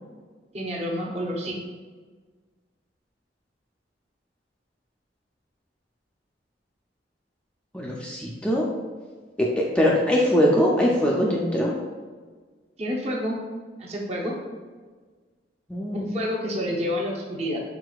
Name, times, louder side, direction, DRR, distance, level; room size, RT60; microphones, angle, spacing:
voice 1, 0.5-1.5 12.8-13.4 13.8-14.3 15.9-17.6, equal, 35° right, -2 dB, 0.8 m, -29 dB
voice 2, 7.7-8.7 9.4-11.7 15.7-16.1, equal, 5° left, -3 dB, 0.4 m, -22 dB
4.7 x 4.1 x 2.3 m, 1.5 s
head